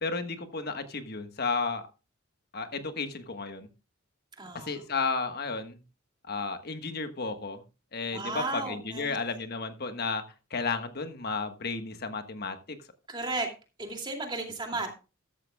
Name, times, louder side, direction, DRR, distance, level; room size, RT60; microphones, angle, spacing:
voice 1, 0.0-1.8 2.5-3.7 4.6-5.8 6.3-7.6 7.9-10.2 10.5-12.8, left 4 dB, 50° left, 8 dB, 1.4 m, -33 dB
voice 2, 4.4-4.8 8.1-9.2 13.1-13.5 13.8-14.9, right 2 dB, 25° right, 2 dB, 2.6 m, -34 dB
13.5 x 13.5 x 2.3 m, 0.31 s
head